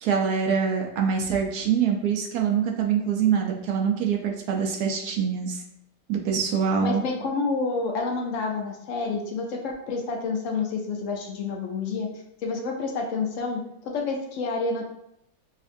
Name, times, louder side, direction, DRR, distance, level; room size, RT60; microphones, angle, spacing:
voice 1, 0.0-5.6 6.1-7.0, right 7 dB, 70° right, 1 dB, 1.0 m, -24 dB
voice 2, 6.8-12.1 12.4-14.9, left 4 dB, 80° left, 1 dB, 0.7 m, -29 dB
5.1 x 2.5 x 2.5 m, 0.79 s
omnidirectional pair, 1.9 m